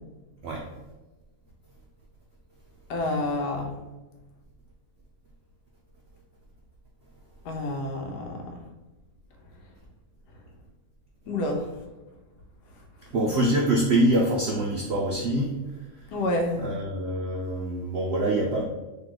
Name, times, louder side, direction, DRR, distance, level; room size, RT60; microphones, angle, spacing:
voice 1, 2.9-3.7 7.4-8.6 11.3-11.7 16.1-16.7, left 1 dB, 85° left, 3 dB, 1.2 m, -28 dB
voice 2, 13.1-15.6 16.6-18.6, right 1 dB, 80° right, -1 dB, 0.6 m, -25 dB
3.1 x 3.0 x 3.8 m, 1.1 s
omnidirectional pair, 1.7 m